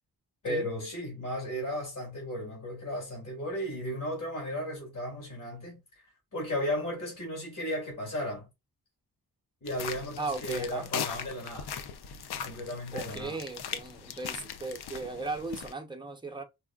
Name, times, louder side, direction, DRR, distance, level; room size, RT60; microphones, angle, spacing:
voice 1, 0.4-5.8 6.3-8.5 9.6-11.7 12.3-13.4, equal, 50° left, 2.5 m, -35 dB
sound 1, 9.7-15.7, left 7 dB, 70° left, 0.6 m, -39 dB
voice 2, 10.2-10.9 12.9-16.4, right 3 dB, 10° right, 0.7 m, -37 dB
4.6 x 2.4 x 2.3 m
wide cardioid pair, 90°, 40 cm